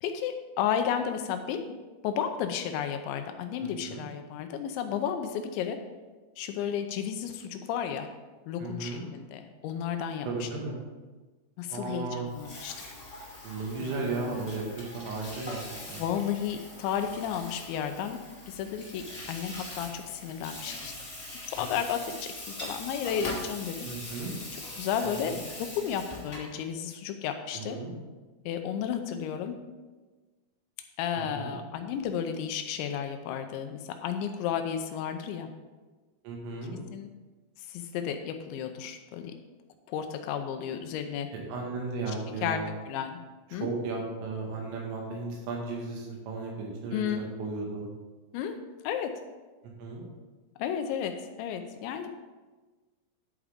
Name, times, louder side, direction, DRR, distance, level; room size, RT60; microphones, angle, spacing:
voice 1, 0.0-1.7 2.0-5.8 6.4-8.1 8.5-10.5 11.6-12.8 13.8-14.4 15.9-18.2 18.5-20.9 21.4-23.8 24.5-27.8 28.5-29.6 31.0-35.5 36.9-37.1 37.6-39.4 39.9-41.3 42.1-42.2 42.4-43.2 43.5-43.7 46.9-47.2 48.3-48.6 48.8-49.1 50.6-52.1, left 8 dB, 80° left, 7 dB, 2.7 m, -33 dB
voice 2, 3.6-4.1 8.6-9.0 10.3-10.8 11.7-12.3 13.4-16.0 23.8-24.3 25.0-25.4 27.5-27.9 31.2-31.6 36.2-36.8 41.3-42.7 43.5-47.9 49.8-50.1, right 3 dB, 80° right, -1 dB, 4.5 m, -35 dB
Water tap faucet / Sink (filling or washing), 12.2-26.5, left 1 dB, 25° left, 1.7 m, -42 dB
11.0 x 8.5 x 3.6 m, 1.3 s
omnidirectional pair, 5.7 m